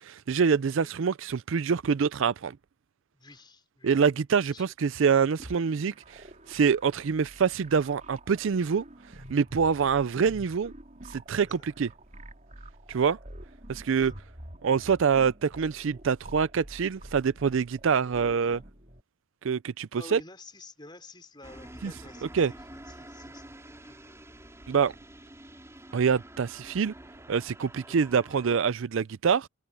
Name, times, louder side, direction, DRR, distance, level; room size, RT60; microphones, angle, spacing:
voice 1, 0.0-2.6 3.8-8.8 9.3-10.7 11.1-11.9 12.9-13.2 13.7-14.1 14.6-18.6 19.4-20.2 21.8-21.9 22.3-22.5 24.7-24.9 25.9-26.9 27.3-29.5, right 6 dB, 65° right, 0.4 m, -25 dB
voice 2, 3.1-3.9 4.4-4.7 9.8-9.9 13.0-13.1 14.0-14.2 18.1-18.6 19.9-22.3 22.7-24.1 27.9-28.0, left 2 dB, 20° left, 5.0 m, -50 dB
sound 1, 5.4-19.0, right 1 dB, 35° right, 3.9 m, -48 dB
sound 2, 21.4-28.6, right 1 dB, 15° right, 4.3 m, -48 dB
head